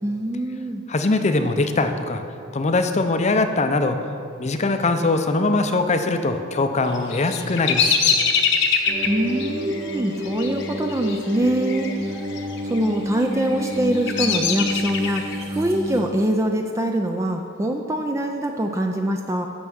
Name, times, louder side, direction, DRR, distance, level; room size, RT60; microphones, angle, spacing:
voice 1, 0.0-0.8 9.0-12.2 12.6-19.5, right 1 dB, 15° right, 3 dB, 0.4 m, -24 dB
voice 2, 0.9-2.2 2.5-4.0 4.4-8.0, left 2 dB, 35° left, 7 dB, 0.6 m, -21 dB
Bird vocalization bird call bird song, 6.9-11.9 12.2-12.8 13.4-15.4, left 6 dB, 60° left, 0.9 m, -23 dB
sound 1, 8.9-16.0, equal, 30° right, 1.0 m, -29 dB
9.1 x 6.4 x 6.2 m, 2.5 s
head